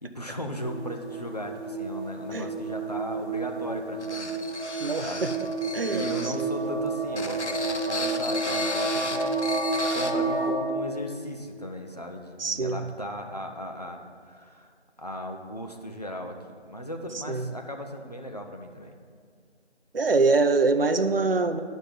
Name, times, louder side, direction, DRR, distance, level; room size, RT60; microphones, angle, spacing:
voice 1, 0.0-4.4 4.6-5.3 5.9-14.7 15.0-16.4 16.7-19.0, equal, 35° left, 3 dB, 0.7 m, -37 dB
sound 1, 0.6-10.5, right 3 dB, 5° right, 1.7 m, -30 dB
sound 2, 4.0-6.4 7.1-10.1, left 3 dB, 85° left, 0.9 m, -35 dB
voice 2, 4.8-5.3 5.7-6.5 12.4-12.9 17.3-17.5 19.9-21.6, right 3 dB, 55° right, 7 dB, 0.6 m, -24 dB
10.5 x 5.3 x 7.4 m, 2.1 s
figure-of-eight pair, 170°, 34 cm